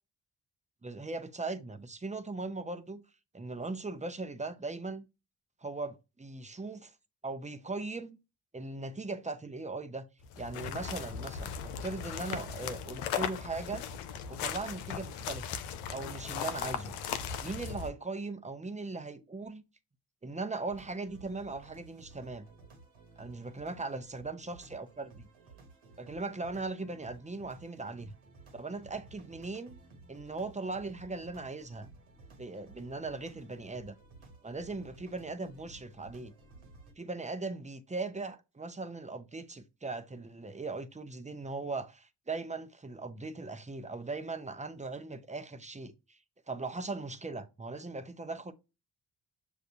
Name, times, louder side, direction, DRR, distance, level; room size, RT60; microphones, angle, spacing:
voice 1, 0.8-3.0 3.3-5.0 5.6-6.9 7.2-8.2 8.5-10.1 10.4-11.5 11.8-13.8 14.3-15.5 15.9-17.0 17.4-19.6 20.2-22.5 23.2-25.3 26.0-28.1 28.5-29.8 30.1-31.9 32.4-33.9 34.4-36.3 37.0-46.2 46.5-48.5, right 3 dB, 15° right, 0.7 m, -39 dB
sound 1, 10.2-17.9, left 8 dB, 85° left, 0.6 m, -38 dB
sound 2, 20.7-36.9, right 3 dB, 70° right, 1.3 m, -55 dB
6.6 x 2.4 x 2.7 m
supercardioid pair, 45°, 50 cm